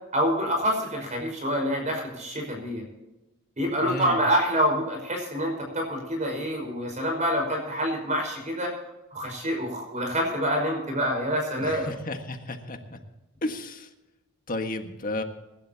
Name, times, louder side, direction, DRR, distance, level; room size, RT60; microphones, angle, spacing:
voice 1, 0.1-2.8 3.6-8.7 9.1-11.9, equal, 35° right, 1 dB, 5.2 m, -27 dB
voice 2, 3.8-4.2 11.6-13.0 13.4-13.9 14.5-15.2, left 2 dB, 40° left, 5 dB, 1.6 m, -33 dB
24.5 x 12.0 x 2.9 m, 1.0 s
head